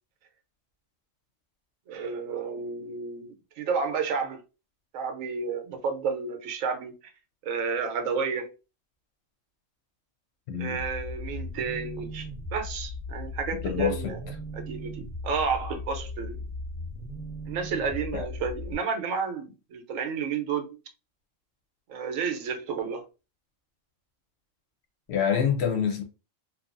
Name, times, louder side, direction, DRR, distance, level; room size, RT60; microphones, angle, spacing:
voice 1, 1.9-4.4 4.9-6.9 7.4-8.5 10.6-14.2 14.5-16.4 17.5-20.8 21.9-23.1, right 5 dB, 85° right, 1.0 m, -31 dB
voice 2, 10.5-10.8 13.6-14.3 18.1-18.2 25.1-26.0, left 7 dB, 65° left, 0.7 m, -26 dB
sound 1, 10.7-18.7, left 2 dB, ahead, 0.5 m, -37 dB
2.7 x 2.2 x 2.4 m
omnidirectional pair, 1.3 m